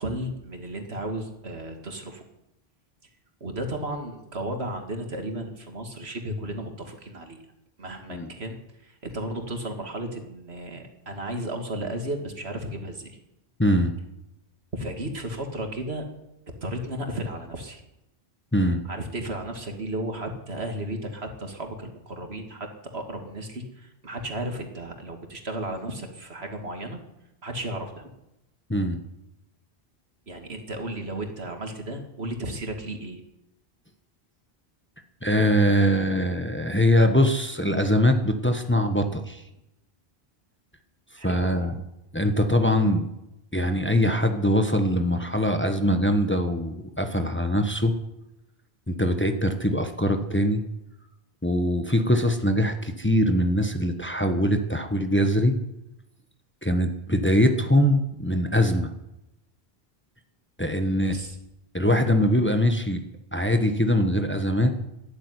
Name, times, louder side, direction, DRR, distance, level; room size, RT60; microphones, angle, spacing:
voice 1, 0.0-2.2 3.4-7.4 7.8-13.2 14.7-16.0 16.6-17.8 18.8-27.0 27.4-28.1 30.3-33.2 41.2-41.6 61.1-61.4, right 1 dB, 85° right, 4 dB, 2.6 m, -34 dB
voice 2, 13.6-13.9 18.5-18.8 28.7-29.0 35.2-39.4 41.2-41.7 42.1-43.1 43.5-47.9 48.9-50.6 51.4-55.6 56.6-58.9 60.6-61.2 61.7-63.0 63.3-64.9, equal, 10° left, 6 dB, 1.2 m, -22 dB
13.0 x 11.5 x 9.7 m, 0.89 s
omnidirectional pair, 1.0 m